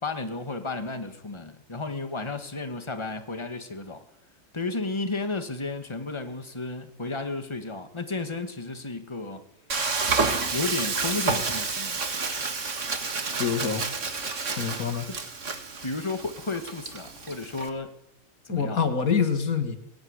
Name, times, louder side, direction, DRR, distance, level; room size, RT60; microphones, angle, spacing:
voice 1, 0.0-4.0 4.5-9.4 10.5-12.0 15.8-17.9 18.5-18.8, left 3 dB, 20° left, 7 dB, 2.0 m, -33 dB
Frying (food), 9.7-17.7, right 4 dB, 60° right, 2.2 m, -30 dB
voice 2, 13.4-13.9 14.6-15.1 18.5-19.8, left 6 dB, 90° left, 8 dB, 2.4 m, -26 dB
20.5 x 17.0 x 9.7 m, 0.84 s
omnidirectional pair, 1.4 m